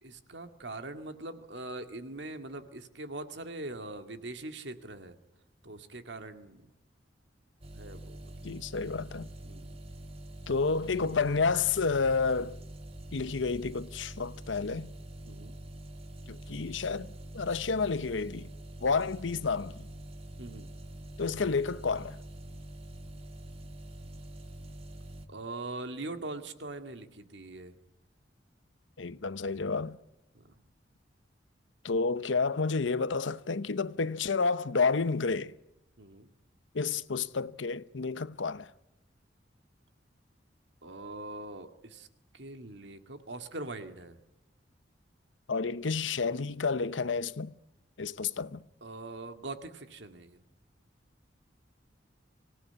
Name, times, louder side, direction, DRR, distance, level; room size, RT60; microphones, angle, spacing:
voice 1, 0.0-5.1 5.6-6.7 7.7-8.3 9.4-9.7 15.3-15.6 20.4-20.7 25.3-27.7 30.3-30.6 36.0-36.3 40.8-42.1 42.3-44.2 48.8-50.4, right 2 dB, 65° right, 2.1 m, -42 dB
sound 1, 7.6-25.3, right 1 dB, 35° right, 1.6 m, -45 dB
voice 2, 8.4-9.3 10.5-12.6 13.1-14.9 16.3-18.5 18.8-19.9 21.2-22.2 29.0-30.0 31.8-35.5 36.7-38.7 45.5-47.5 48.0-48.6, left 4 dB, 90° left, 0.8 m, -30 dB
25.0 x 17.5 x 9.8 m
head